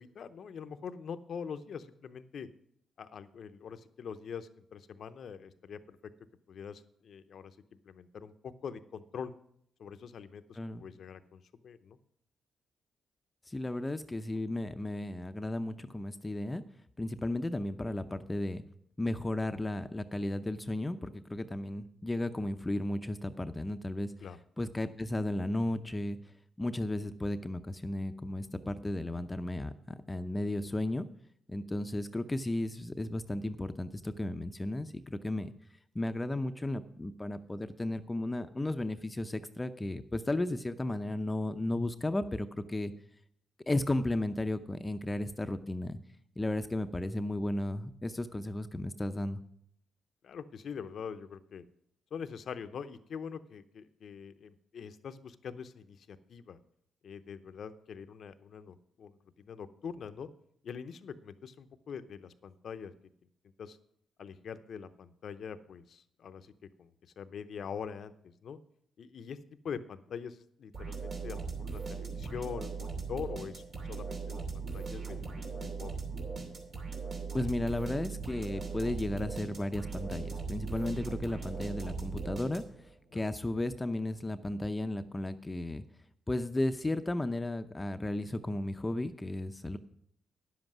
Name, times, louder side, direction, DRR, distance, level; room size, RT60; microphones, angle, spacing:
voice 1, 0.0-2.5 3.0-6.0 6.5-7.6 7.8-9.3 9.8-12.0 24.2-24.4 50.2-51.7 52.1-56.6 57.0-60.3 60.6-62.9 63.6-63.8 64.2-66.5 66.8-66.9 67.2-68.6 69.0-69.4 69.6-76.0 83.1-83.2, left 7 dB, 65° left, 11 dB, 0.7 m, -44 dB
voice 2, 13.5-16.6 17.0-18.6 19.0-24.1 24.6-26.2 26.6-31.1 31.5-35.5 35.9-42.9 43.7-46.0 46.4-49.4 77.3-85.8 86.3-89.8, left 1 dB, 20° left, 10 dB, 0.6 m, -34 dB
sound 1, 70.7-82.9, right 4 dB, 60° right, 2.7 m, -39 dB
10.0 x 7.7 x 6.1 m, 0.69 s
supercardioid pair, 60°, 0 cm